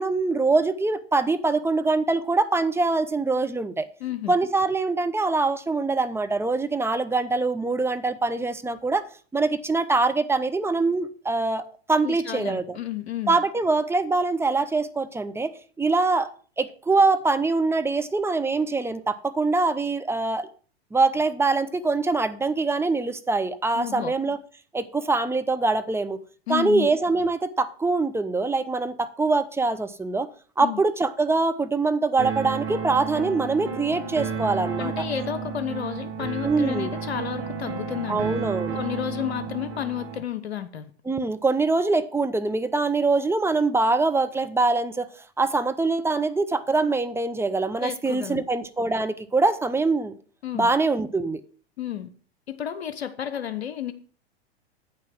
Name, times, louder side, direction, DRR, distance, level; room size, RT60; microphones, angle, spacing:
voice 1, 0.0-3.9 4.3-9.0 9.3-12.8 13.3-16.3 16.6-20.5 20.9-24.4 24.7-26.2 26.5-30.3 30.6-35.0 36.4-36.9 38.1-38.8 41.0-45.1 45.4-50.1 50.5-51.4, right 3 dB, 10° right, 10 dB, 0.7 m, -24 dB
voice 2, 4.0-4.3 12.0-13.4 23.7-24.1 26.5-26.9 30.6-30.8 34.8-38.2 38.7-40.8 47.8-48.4 50.4-50.7 51.8-52.1 52.5-53.9, left 10 dB, 75° left, 11 dB, 0.9 m, -31 dB
sound 1, 32.2-40.2, right 5 dB, 40° right, 2.6 m, -32 dB
8.7 x 5.8 x 5.9 m, 0.41 s
figure-of-eight pair, 95°, 32 cm